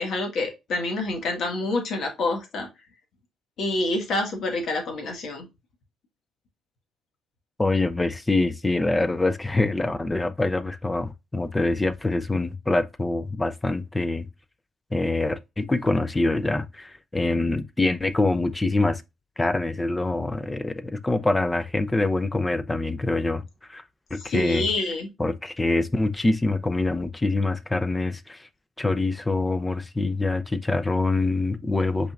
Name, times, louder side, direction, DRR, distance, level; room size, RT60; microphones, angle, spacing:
voice 1, 0.0-2.7 3.6-5.5 24.2-25.1, left 2 dB, 65° left, 1.8 m, -27 dB
voice 2, 7.6-14.3 14.9-19.0 19.4-23.4 23.7-23.8 24.1-24.7 25.2-28.5 28.8-32.1, left 2 dB, 15° left, 0.6 m, -25 dB
5.5 x 4.0 x 2.4 m
cardioid pair, 90°, 0 cm